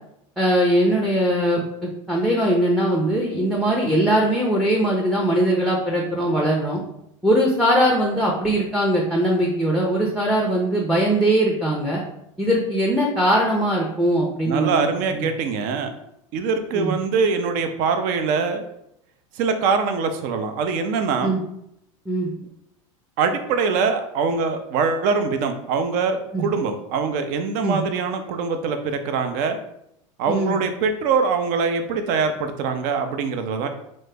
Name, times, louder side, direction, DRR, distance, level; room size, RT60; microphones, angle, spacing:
voice 1, 0.4-6.8 7.2-12.0 12.4-15.3 16.7-17.0 21.2-21.4 22.1-22.3 26.3-26.5 27.6-27.8 30.3-30.6, right 1 dB, ahead, -1 dB, 0.5 m, -21 dB
voice 2, 14.4-15.9 16.3-18.6 19.3-21.4 23.2-29.6 30.2-33.7, right 5 dB, 55° right, 7 dB, 0.5 m, -23 dB
3.1 x 2.0 x 3.4 m, 0.78 s
hypercardioid pair, 90°, 17 cm